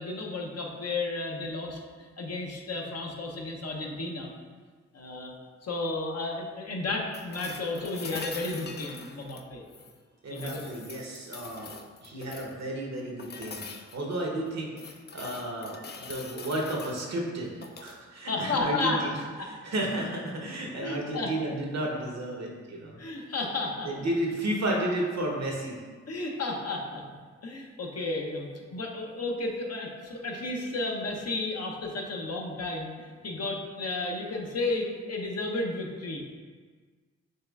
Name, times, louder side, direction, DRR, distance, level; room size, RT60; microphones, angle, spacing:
voice 1, 0.0-4.3 4.9-5.3 5.6-9.6 10.3-10.7 18.3-19.1 19.4-19.5 20.8-21.3 21.9-22.0 23.0-24.1 26.1-27.0 27.4-36.3, left 2 dB, 55° left, 0 dB, 0.8 m, -33 dB
sound 1, 7.1-10.0 10.3-12.6 13.2-14.0 14.4-17.0 17.5-18.0 20.0-20.1, left 4 dB, 35° left, 0.4 m, -43 dB
voice 2, 10.2-11.7 12.0-19.1 19.4-23.0 23.8-25.8, right 1 dB, 60° right, -1 dB, 1.0 m, -32 dB
5.5 x 3.1 x 2.4 m, 1.5 s
supercardioid pair, 45°, 30 cm